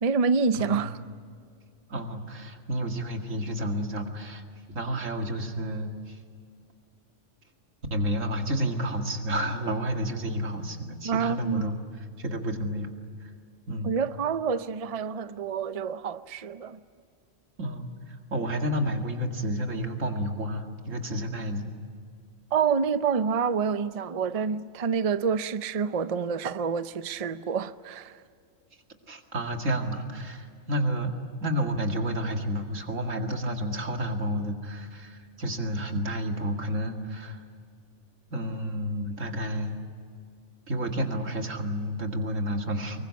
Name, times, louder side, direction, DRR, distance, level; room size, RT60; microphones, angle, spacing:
voice 1, 0.0-1.0 11.0-11.7 13.8-16.8 22.5-28.1, right 6 dB, 35° right, 0.6 m, -27 dB
voice 2, 1.9-4.4 4.7-6.2 7.9-11.8 12.2-12.9 13.2-13.3 13.7-13.9 17.6-21.7 29.1-37.4 38.3-39.8 40.7-43.0, equal, 85° right, 2.6 m, -30 dB
25.0 x 22.5 x 8.5 m
omnidirectional pair, 1.3 m